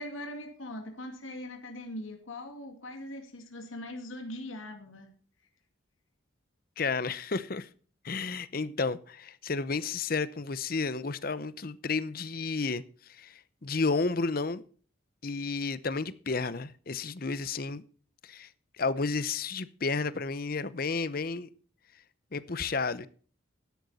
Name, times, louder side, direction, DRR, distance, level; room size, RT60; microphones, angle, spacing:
voice 1, 0.0-5.1, left 1 dB, 85° left, 4 dB, 2.2 m, -41 dB
voice 2, 6.8-7.7 8.0-12.8 13.1-14.6 15.2-17.8 18.2-18.5 18.8-21.5 22.3-23.1, left 4 dB, 45° left, 16 dB, 0.7 m, -32 dB
13.0 x 10.5 x 4.2 m, 0.42 s
head